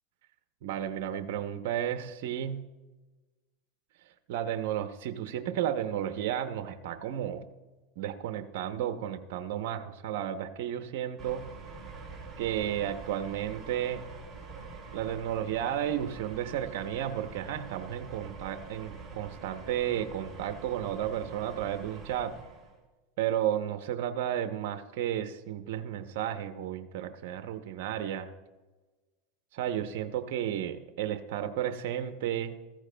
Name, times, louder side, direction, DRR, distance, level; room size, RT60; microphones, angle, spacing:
voice 1, 0.6-2.6 4.0-7.4 8.0-11.5 12.4-14.1 14.9-22.3 23.2-28.3 29.5-32.6, right 10 dB, 70° right, 8 dB, 0.7 m, -33 dB
sound 1, 11.2-22.8, right 4 dB, 10° right, 3.0 m, -45 dB
15.0 x 14.5 x 2.2 m, 1.2 s
supercardioid pair, 125°, 0 cm